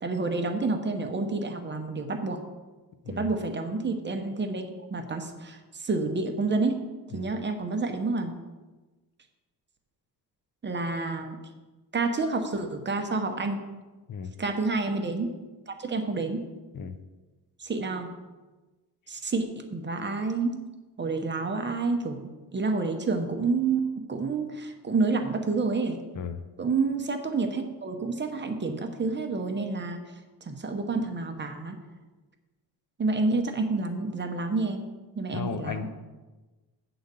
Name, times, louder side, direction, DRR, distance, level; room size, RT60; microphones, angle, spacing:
voice 1, 0.0-2.4 3.1-6.8 7.1-8.3 10.6-11.4 11.9-13.6 14.4-15.3 15.7-16.4 17.6-18.1 19.1-20.6 21.0-26.0 26.6-30.0 30.4-31.8 33.0-34.8 35.2-35.9, right 3 dB, 30° right, 5 dB, 0.8 m, -29 dB
voice 2, 35.3-36.0, left 6 dB, 50° left, 9 dB, 0.6 m, -35 dB
9.4 x 3.9 x 6.7 m, 1.2 s
wide cardioid pair, 145°, 40 cm